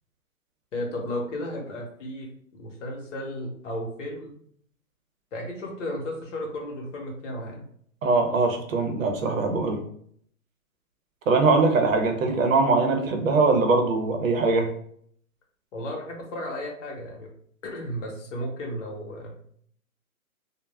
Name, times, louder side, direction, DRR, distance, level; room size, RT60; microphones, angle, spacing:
voice 1, 0.7-4.4 5.3-7.7 15.7-17.3 17.6-19.4, left 1 dB, 55° left, 0 dB, 0.9 m, -34 dB
voice 2, 8.0-9.8 11.3-14.7, right 3 dB, 60° right, 4 dB, 0.7 m, -22 dB
2.3 x 2.0 x 3.3 m, 0.64 s
hypercardioid pair, 165°, 44 cm